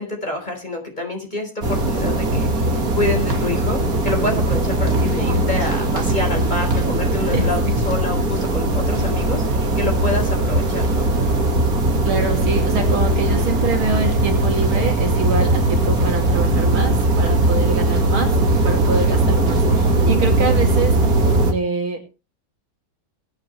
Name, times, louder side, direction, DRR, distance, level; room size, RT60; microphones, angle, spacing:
voice 1, 0.0-11.1 17.3-17.4 18.8-18.9, left 2 dB, 20° left, 3 dB, 4.5 m, -27 dB
sound 1, 1.6-21.5, right 2 dB, 45° right, 2.6 m, -19 dB
voice 2, 12.0-18.4 18.6-22.3, right 3 dB, 80° right, 4 dB, 3.6 m, -25 dB
22.0 x 9.1 x 3.3 m, 0.31 s
omnidirectional pair, 2.2 m